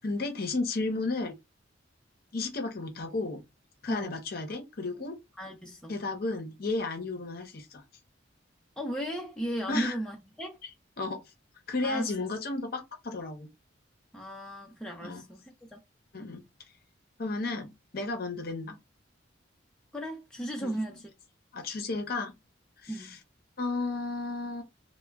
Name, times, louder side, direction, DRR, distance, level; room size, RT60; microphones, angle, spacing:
voice 1, 0.0-1.4 2.3-3.4 3.8-5.2 5.9-7.8 9.7-10.0 10.6-10.7 11.0-11.2 11.7-13.5 15.0-15.2 16.1-16.4 17.2-18.8 20.6-20.8 21.5-22.3 22.8-23.2 23.6-24.6, left 3 dB, 50° left, 0.7 m, -33 dB
voice 2, 5.4-5.9 8.8-10.6 11.8-12.1 14.1-15.4 15.7-15.8 19.9-21.1 22.9-23.2, right 1 dB, 5° left, 0.4 m, -35 dB
2.1 x 2.1 x 3.3 m
head